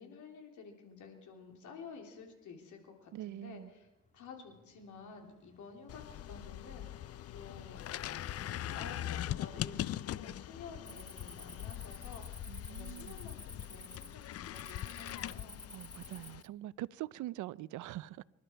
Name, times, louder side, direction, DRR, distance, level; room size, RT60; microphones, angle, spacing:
voice 1, 0.0-3.9 4.1-8.1 8.7-15.6, left 5 dB, 75° left, 3.3 m, -51 dB
Traffic noise roadway noise, 2.2-15.9, left 3 dB, 25° left, 2.6 m, -62 dB
voice 2, 3.1-3.7 12.5-13.2 15.7-18.2, right 15 dB, 80° right, 0.5 m, -43 dB
sound 1, 5.9-16.4, left 12 dB, 55° left, 0.5 m, -42 dB
Cricket, 10.9-16.5, left 1 dB, 10° left, 1.0 m, -52 dB
25.5 x 11.5 x 4.5 m
cardioid pair, 90°, 30 cm